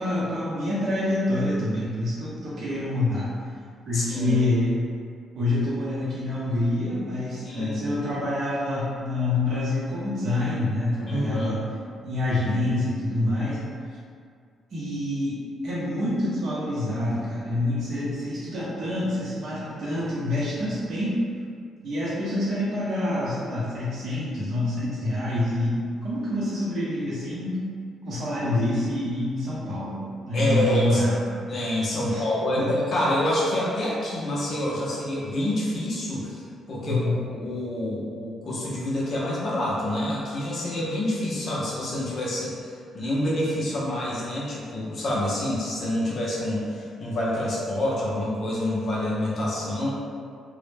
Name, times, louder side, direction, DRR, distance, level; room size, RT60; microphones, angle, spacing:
voice 1, 0.0-3.3 3.9-4.7 5.3-11.6 12.0-13.6 14.7-21.2 21.8-27.6 28.0-31.4 32.0-32.3 32.6-32.7 36.8-37.2, left 1 dB, 55° right, -9 dB, 0.7 m, -26 dB
voice 2, 3.9-4.3 7.5-7.8 11.1-11.5 30.3-31.0 31.5-36.4 36.7-42.5 42.9-49.9, left 1 dB, 45° left, -6 dB, 0.5 m, -27 dB
2.0 x 2.0 x 3.1 m, 2.2 s
cardioid pair, 140°, 0 cm